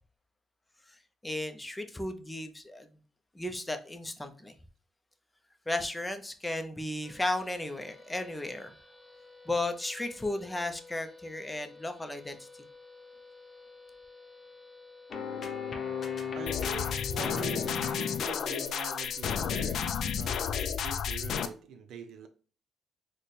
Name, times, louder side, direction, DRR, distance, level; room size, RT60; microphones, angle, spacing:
voice 1, 1.2-2.9 3.3-4.5 5.7-8.7 9.5-12.5, left 2 dB, 10° left, 0.6 m, -34 dB
sound 1, 7.0-20.2, left 3 dB, 5° right, 1.4 m, -53 dB
sound 2, 15.1-18.3, left 6 dB, 45° left, 0.7 m, -36 dB
voice 2, 16.3-22.3, right 5 dB, 75° right, 0.6 m, -44 dB
sound 3, 16.5-21.5, left 7 dB, 70° left, 0.3 m, -32 dB
4.1 x 2.2 x 3.2 m
cardioid pair, 90°, 0 cm